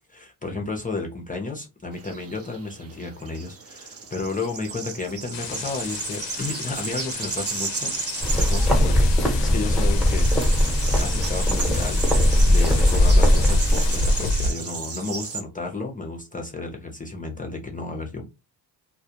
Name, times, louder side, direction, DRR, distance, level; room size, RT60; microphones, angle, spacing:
voice 1, 0.1-8.0 8.4-9.1 9.4-12.0 12.5-18.2, left 3 dB, 20° left, 0.6 m, -32 dB
sound 1, 1.9-15.4, right 5 dB, 35° right, 0.6 m, -34 dB
sound 2, 5.3-14.5, left 3 dB, 90° left, 0.6 m, -30 dB
sound 3, 8.2-14.3, left 1 dB, ahead, 1.0 m, -19 dB
2.3 x 2.1 x 2.8 m
cardioid pair, 80°, 43 cm